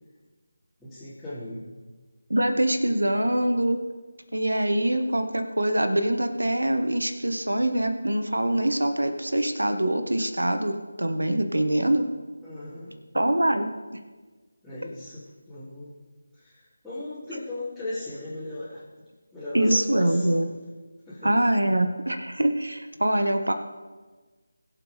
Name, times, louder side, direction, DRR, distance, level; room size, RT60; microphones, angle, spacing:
voice 1, 0.8-1.6 12.4-12.9 14.6-15.9 16.3-18.8 19.3-20.4 21.1-21.3, left 1 dB, ahead, -20 dB, 3.2 m, -37 dB
voice 2, 2.3-3.8 4.3-12.0 13.1-13.7 19.5-20.5 21.2-23.5, right 1 dB, 80° right, 7 dB, 1.5 m, -24 dB
21.0 x 7.8 x 3.5 m, 1.3 s
figure-of-eight pair, 160°, 0 cm